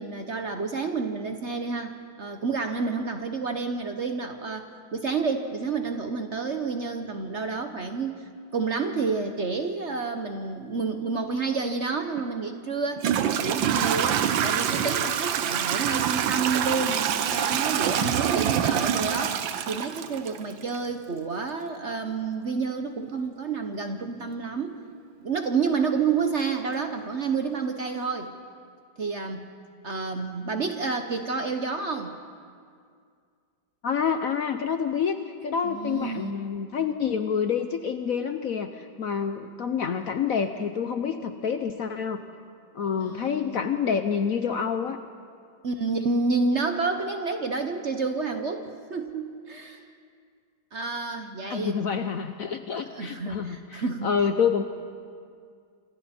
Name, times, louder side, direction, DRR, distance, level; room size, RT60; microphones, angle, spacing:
voice 1, 0.0-8.2 8.5-13.1 13.4-19.4 19.7-24.7 25.2-28.3 29.0-29.5 29.8-32.1 35.6-36.3 43.0-43.7 45.6-49.9 50.7-51.7 52.9-54.1, right 4 dB, 45° right, 6 dB, 1.0 m, -29 dB
Toilet flush / Trickle dribble, 12.2-12.3 13.0-20.8, right 9 dB, 85° right, 1.6 m, -25 dB
voice 2, 33.8-35.2 35.4-42.2 42.7-45.0 51.5-54.6, left 7 dB, 60° left, 8 dB, 0.9 m, -27 dB
26.5 x 26.0 x 4.4 m, 2.2 s
omnidirectional pair, 2.1 m